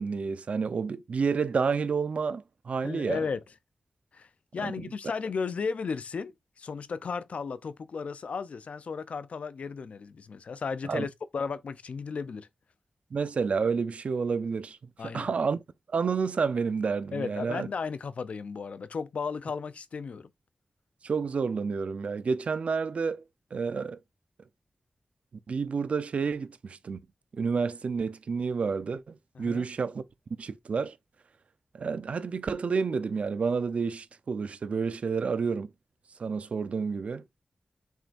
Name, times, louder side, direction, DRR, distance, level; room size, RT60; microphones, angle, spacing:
voice 1, 0.0-3.2 4.6-5.1 10.8-11.1 13.1-14.8 15.0-15.6 15.9-17.7 21.0-23.2 23.5-24.0 25.5-27.0 27.3-30.0 30.4-31.0 31.7-35.7 36.2-37.2, right 5 dB, 75° right, 0.7 m, -30 dB
voice 2, 2.8-3.4 4.1-4.3 4.5-12.5 15.0-15.3 17.1-20.3 29.3-29.7, left 5 dB, 80° left, 0.6 m, -34 dB
7.4 x 5.5 x 2.6 m
wide cardioid pair, 105°, 2 cm